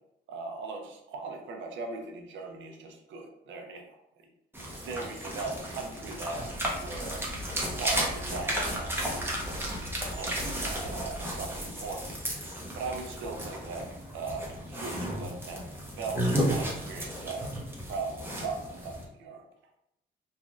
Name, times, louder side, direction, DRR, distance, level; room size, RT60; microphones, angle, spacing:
voice 1, 0.3-4.0 4.6-6.5 6.8-7.3 7.7-9.3 10.0-12.2 12.7-15.7 16.0-17.5 17.9-19.5, right 3 dB, 75° right, 3 dB, 0.6 m, -39 dB
sound 1, 4.5-19.0, equal, 10° right, 0.7 m, -34 dB
Wind, 5.6-11.9, equal, 45° right, 1.0 m, -43 dB
3.1 x 2.4 x 2.4 m, 0.83 s
cardioid pair, 90°, 20 cm